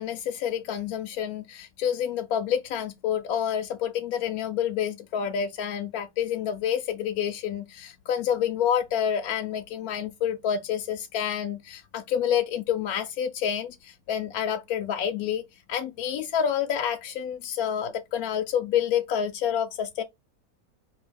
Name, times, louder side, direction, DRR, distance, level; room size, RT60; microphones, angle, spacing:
voice 1, 0.0-15.4 15.7-20.0, left 9 dB, 80° left, 1.1 m, -28 dB
4.6 x 2.8 x 3.2 m
omnidirectional pair, 1.6 m